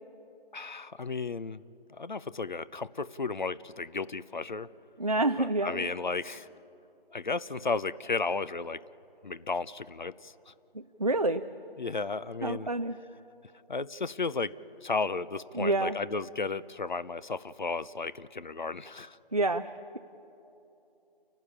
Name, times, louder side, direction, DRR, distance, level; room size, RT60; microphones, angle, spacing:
voice 1, 0.5-1.6 2.0-4.7 5.4-6.5 7.1-8.8 9.2-10.5 11.8-12.7 13.7-14.6 14.8-19.2, left 4 dB, 50° left, 17 dB, 0.6 m, -34 dB
voice 2, 5.0-5.9 10.7-11.4 12.4-13.0 15.5-16.0 19.3-20.0, right 2 dB, 40° right, 8 dB, 0.4 m, -28 dB
29.5 x 12.0 x 8.6 m, 2.9 s
figure-of-eight pair, 170°, 30 cm